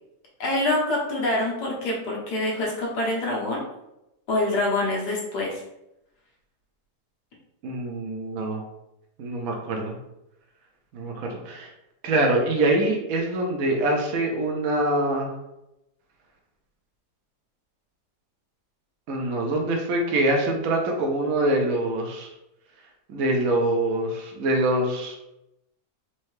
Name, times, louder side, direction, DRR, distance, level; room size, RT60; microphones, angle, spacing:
voice 1, 0.4-3.6 4.3-5.6, left 2 dB, 75° left, -3 dB, 1.6 m, -25 dB
voice 2, 7.6-8.6 9.2-10.0 10.9-11.7 12.0-15.3 19.1-22.3 23.1-25.2, right 1 dB, 65° right, 1 dB, 1.0 m, -24 dB
4.3 x 2.7 x 3.1 m, 0.88 s
omnidirectional pair, 1.8 m